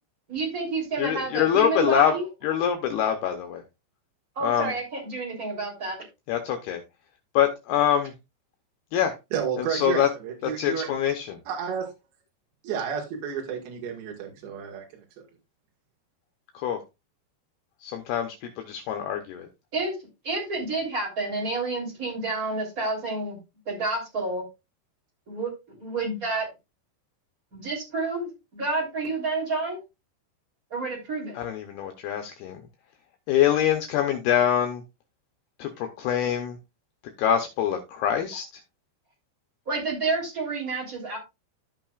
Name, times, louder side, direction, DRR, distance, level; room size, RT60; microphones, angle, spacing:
voice 1, 0.3-2.2 4.3-6.0 19.7-19.9 20.2-23.4 23.6-24.4 25.3-25.5 25.8-26.5 27.5-29.8 30.7-31.3 39.7-41.2, right 3 dB, 20° right, -1 dB, 3.2 m, -29 dB
voice 2, 1.0-2.1 2.4-3.6 4.4-4.7 6.3-6.8 7.3-8.1 8.9-9.1 9.7-10.1 10.4-11.4 16.5-16.8 17.8-19.5 31.3-32.6 33.3-34.8 35.6-36.6 37.2-38.4, left 9 dB, 75° left, 5 dB, 2.6 m, -24 dB
voice 3, 9.3-10.9 11.5-11.9 12.6-14.9, right 7 dB, 75° right, 0 dB, 3.8 m, -31 dB
14.0 x 5.9 x 2.4 m, 0.24 s
omnidirectional pair, 5.1 m